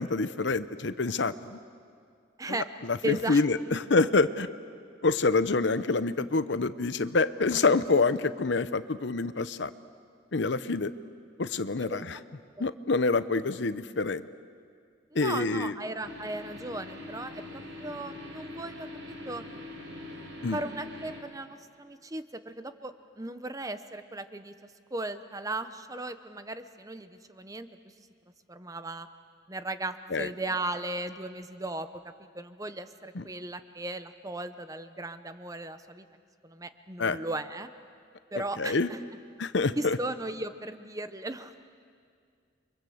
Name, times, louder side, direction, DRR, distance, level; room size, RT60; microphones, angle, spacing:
voice 1, 0.0-1.6 2.5-2.6 2.9-4.5 5.0-9.7 10.3-10.9 11.4-12.2 12.6-14.2 15.1-15.7 20.4-20.6 30.1-30.3 33.1-33.2 37.0-37.2 38.6-38.9 39.4-40.0, left 3 dB, 60° left, 14 dB, 0.7 m, -26 dB
voice 2, 3.0-3.4 11.8-12.0 12.6-12.7 15.1-19.5 20.5-24.5 24.9-27.7 28.5-29.1 29.5-31.9 32.2-36.1 36.4-37.7 38.3-39.0 39.8-41.5, right 2 dB, 15° right, 10 dB, 0.9 m, -36 dB
sound 1, 16.0-21.2, left 2 dB, 75° right, 4.5 m, -43 dB
30.0 x 24.5 x 7.9 m, 2.2 s
head